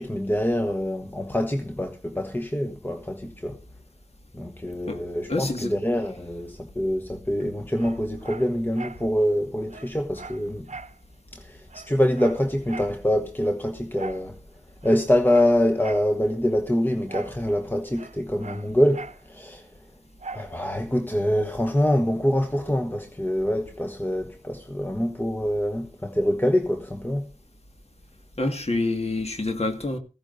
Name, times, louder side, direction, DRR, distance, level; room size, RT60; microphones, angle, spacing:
voice 1, 0.0-3.6 4.3-10.7 11.3-14.4 14.8-19.7 20.3-27.3, equal, 15° left, 1.1 m, -25 dB
voice 2, 5.3-5.7 28.4-30.0, left 2 dB, 60° left, 1.9 m, -27 dB
Dog, 7.8-9.1 9.4-9.5 9.7-11.0 11.3-11.4 11.7-13.0 14.0-14.3 14.8-16.1 17.1-17.4 17.7-19.2 20.2-20.5 21.0-21.1, right 4 dB, 75° right, 0.7 m, -40 dB
17.0 x 15.5 x 2.6 m
wide cardioid pair, 40°, 12 cm